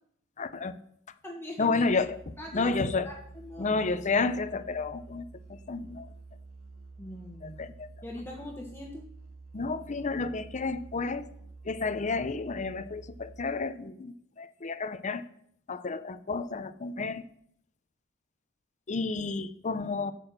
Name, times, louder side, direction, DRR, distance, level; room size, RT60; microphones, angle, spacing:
voice 1, 0.4-0.7 1.6-3.1 3.6-6.1 7.4-7.9 9.5-11.3 11.6-15.2 15.7-17.2 18.9-20.1, left 4 dB, 35° left, 12 dB, 0.6 m, -31 dB
voice 2, 1.2-1.8 2.4-2.8 3.0-3.7 7.0-7.6 8.0-9.0, left 1 dB, 10° left, -1 dB, 1.4 m, -41 dB
Musical instrument, 1.7-13.8, right 3 dB, 75° right, 2.2 m, -49 dB
8.8 x 7.9 x 6.5 m, 0.68 s
head